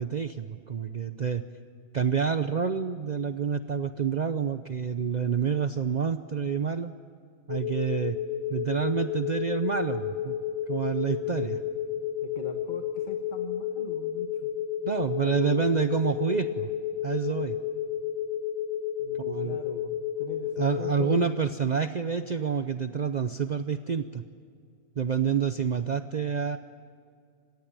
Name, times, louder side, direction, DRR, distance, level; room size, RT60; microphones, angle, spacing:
voice 1, 0.0-1.4 1.9-6.9 7.5-8.2 8.5-10.4 10.7-11.6 14.8-16.7 17.0-17.6 19.2-19.6 20.6-24.2 25.0-26.6, right 6 dB, 45° right, 10 dB, 0.7 m, -28 dB
sound 1, 7.5-21.2, left 9 dB, 75° left, 1.1 m, -32 dB
voice 2, 12.2-14.5 15.2-15.7 19.0-19.9 20.2-21.4, left 4 dB, 45° left, 5 dB, 1.6 m, -41 dB
26.0 x 20.0 x 8.8 m, 2.3 s
omnidirectional pair, 1.2 m